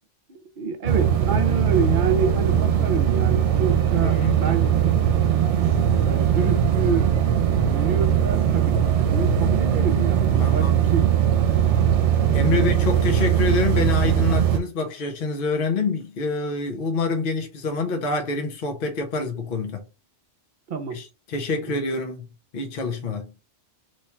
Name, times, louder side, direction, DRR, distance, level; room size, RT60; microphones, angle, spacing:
voice 1, 0.3-4.7 6.0-7.2 7.6-11.1 12.4-12.6 20.7-21.0 21.7-21.8, right 5 dB, 50° right, 0.7 m, -27 dB
sound 1, 0.9-14.6, right 9 dB, 75° right, 0.9 m, -20 dB
voice 2, 4.0-4.4 10.4-10.9 12.3-19.8 20.9-22.3 22.5-23.3, left 3 dB, 55° left, 0.8 m, -26 dB
3.1 x 2.3 x 4.2 m
omnidirectional pair, 1.2 m